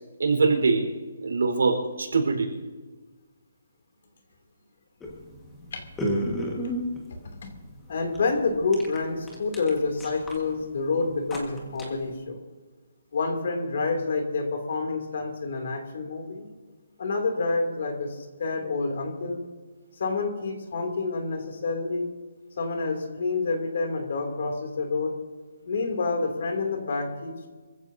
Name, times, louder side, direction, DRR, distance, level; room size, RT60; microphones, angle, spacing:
voice 1, 0.2-0.9 1.2-2.5, right 4 dB, 75° right, 2 dB, 4.5 m, -23 dB
sound 1, 5.0-12.2, equal, 5° left, 1.7 m, -34 dB
voice 2, 7.9-12.4 13.1-16.5 17.0-19.4 20.0-22.1 22.6-25.1 25.6-27.5, left 3 dB, 45° left, 4 dB, 2.9 m, -28 dB
26.0 x 15.5 x 2.8 m, 1.4 s
hypercardioid pair, 175°, 0 cm